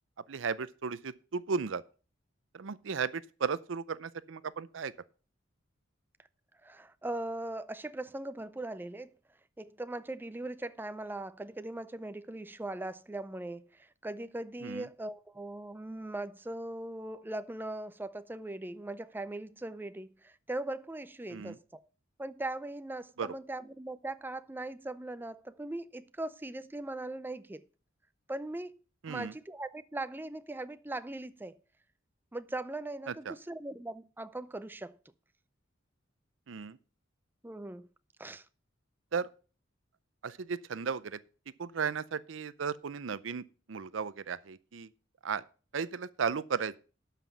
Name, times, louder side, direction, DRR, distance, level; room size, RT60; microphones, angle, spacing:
voice 1, 0.3-1.8 2.5-4.9 14.6-14.9 21.3-21.6 23.2-23.3 29.0-29.3 33.1-33.3 36.5-36.8 39.1-39.3 40.2-41.2 41.6-43.4 43.7-44.9 45.2-45.4 45.7-46.7, right 5 dB, 80° right, 0.6 m, -35 dB
voice 2, 6.6-9.1 9.6-21.9 22.2-27.6 28.3-28.8 29.1-31.6 32.3-35.0 37.4-37.9 38.2-38.5, right 2 dB, 10° right, 0.4 m, -40 dB
12.5 x 5.8 x 5.7 m
head